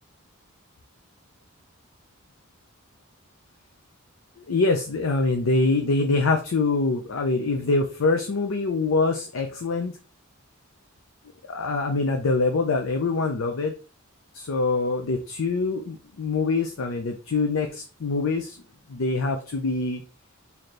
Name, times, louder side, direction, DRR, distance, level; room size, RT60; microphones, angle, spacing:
voice 1, 4.5-9.9 11.5-13.7 14.3-18.6 18.9-20.0, left 3 dB, 75° left, 4 dB, 0.6 m, -24 dB
4.1 x 2.8 x 3.2 m, 0.33 s
head